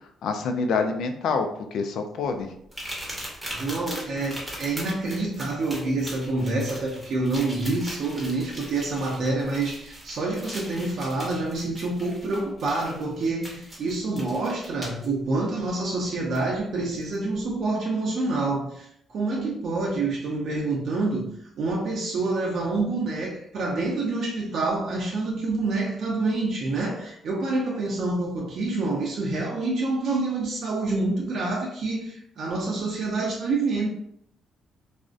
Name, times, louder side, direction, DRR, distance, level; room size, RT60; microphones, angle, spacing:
voice 1, 0.2-2.5, left 4 dB, 75° left, 6 dB, 0.3 m, -27 dB
sound 1, 2.7-15.1 16.3-16.4 17.0-17.1, equal, 5° right, 0.9 m, -40 dB
voice 2, 3.5-21.3 21.6-33.9, right 2 dB, 65° right, -2 dB, 0.5 m, -27 dB
2.5 x 2.0 x 2.4 m, 0.69 s
cardioid pair, 90°, 0 cm